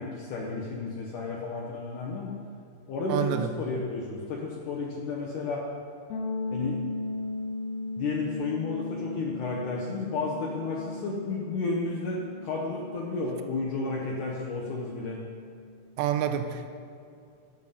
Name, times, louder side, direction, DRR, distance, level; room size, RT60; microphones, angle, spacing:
voice 1, 0.0-2.3 2.9-5.7 6.5-6.8 8.0-15.2, left 3 dB, 70° left, -2 dB, 2.1 m, -32 dB
voice 2, 3.1-3.5 16.0-16.7, right 10 dB, 80° right, 7 dB, 2.4 m, -28 dB
sound 1, 6.1-15.8, left 2 dB, 85° left, 3.0 m, -37 dB
11.0 x 7.1 x 5.4 m, 2.4 s
omnidirectional pair, 4.3 m